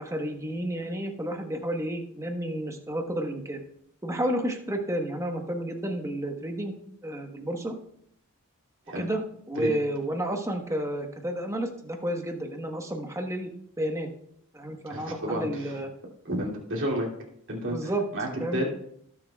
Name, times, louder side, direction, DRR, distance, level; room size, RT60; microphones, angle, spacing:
voice 1, 0.0-3.6 4.0-7.7 8.9-9.2 9.5-13.5 13.8-14.1 14.5-15.9 17.7-18.0 18.4-18.7, right 1 dB, 15° right, 3 dB, 1.2 m, -31 dB
voice 2, 14.9-15.8 16.2-17.1 17.5-18.7, equal, 60° right, -3 dB, 2.7 m, -31 dB
19.0 x 7.2 x 2.3 m, 0.70 s
head